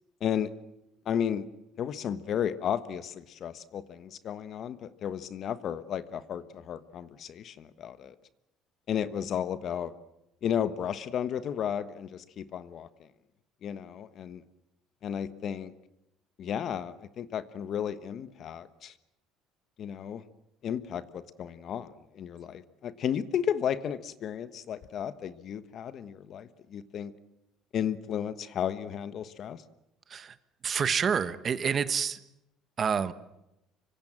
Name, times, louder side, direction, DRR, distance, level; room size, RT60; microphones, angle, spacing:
voice 1, 0.2-0.5 1.0-1.5 1.8-8.1 8.9-9.9 10.4-12.9 13.6-14.4 15.0-15.7 16.4-18.9 19.8-20.2 20.6-27.1 27.7-29.6, left 9 dB, 45° left, 13 dB, 1.3 m, -33 dB
voice 2, 30.6-32.2 32.8-33.1, right 7 dB, 35° right, 13 dB, 1.2 m, -28 dB
25.5 x 25.0 x 7.6 m, 0.87 s
cardioid pair, 135°, 0 cm